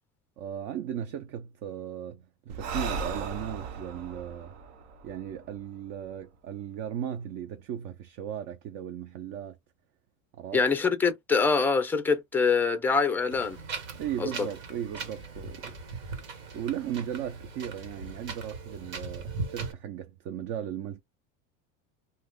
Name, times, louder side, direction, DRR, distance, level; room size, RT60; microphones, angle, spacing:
voice 1, 0.4-4.6 5.0-9.6 10.4-10.7 13.9-15.7 16.5-21.0, right 10 dB, 55° right, 0.6 m, -36 dB
Breathing, 2.5-6.0, right 4 dB, 70° right, 0.9 m, -37 dB
voice 2, 10.5-13.6 14.2-14.5, left 5 dB, 5° left, 0.4 m, -25 dB
Wind, 13.3-19.7, right 4 dB, 90° right, 1.7 m, -39 dB
2.7 x 2.3 x 3.6 m
supercardioid pair, 135°, 38 cm